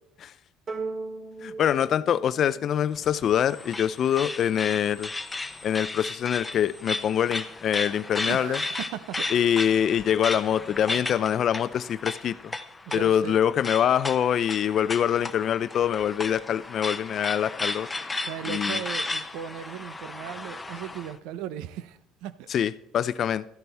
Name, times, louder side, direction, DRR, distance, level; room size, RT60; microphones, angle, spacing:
sound 1, 0.7-3.3, right 3 dB, 40° right, 2.2 m, -37 dB
voice 1, 1.4-5.1 5.6-8.6 9.3-12.5 12.9-17.9 18.5-18.8 22.5-23.4, left 9 dB, 50° left, 16 dB, 0.5 m, -24 dB
sound 2, 2.9-21.1, left 3 dB, 15° left, 0.8 m, -35 dB
voice 2, 8.2-9.2 12.9-13.3 18.3-22.5, right 10 dB, 75° right, 15 dB, 0.6 m, -37 dB
13.5 x 11.0 x 3.4 m, 0.79 s
supercardioid pair, 90°, 0 cm